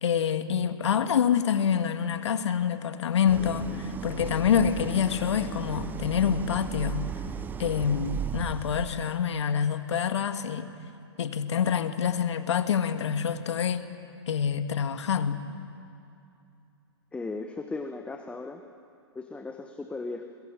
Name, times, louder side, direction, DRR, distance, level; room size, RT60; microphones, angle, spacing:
voice 1, 0.0-7.0 7.6-10.7 11.2-13.8 14.3-15.4, left 7 dB, 75° left, 8 dB, 1.8 m, -26 dB
Idling, 3.3-9.3, right 7 dB, 10° right, 0.5 m, -36 dB
voice 2, 17.1-18.6 19.1-20.2, left 3 dB, 10° left, 5 dB, 1.1 m, -36 dB
21.5 x 21.0 x 8.8 m, 2.6 s
hypercardioid pair, 130°, 15 cm